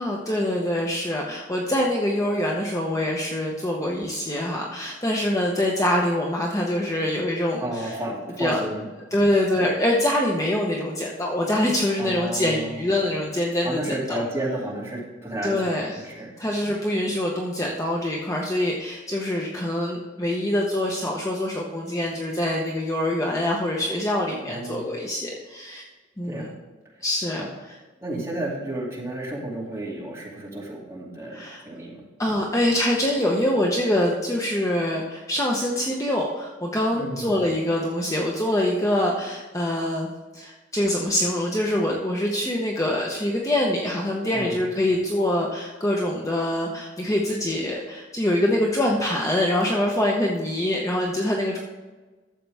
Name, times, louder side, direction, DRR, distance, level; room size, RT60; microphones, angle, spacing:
voice 1, 0.0-7.9 8.4-8.6 9.1-14.2 15.4-16.0 16.4-25.9 26.2-26.5 27.0-27.4 31.3-31.6 32.2-51.6, left 1 dB, 15° left, -2 dB, 0.9 m, -24 dB
voice 2, 7.6-8.8 12.0-12.8 13.6-16.3 24.4-24.9 26.2-26.5 27.4-27.5 28.0-32.0 36.9-37.3 44.3-44.6, right 1 dB, 15° right, -6 dB, 2.6 m, -32 dB
12.0 x 7.6 x 3.5 m, 1.3 s
head